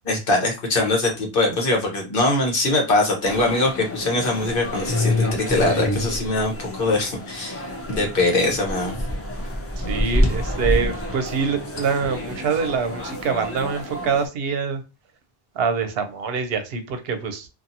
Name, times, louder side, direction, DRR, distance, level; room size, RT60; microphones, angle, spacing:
voice 1, 0.0-7.6 7.9-8.9, left 2 dB, 60° left, 1.1 m, -22 dB
sound 1, 3.2-14.3, left 1 dB, 20° left, 0.4 m, -27 dB
voice 2, 9.8-14.8 15.6-17.5, right 5 dB, 75° right, 0.8 m, -25 dB
2.6 x 2.5 x 2.6 m
omnidirectional pair, 1.0 m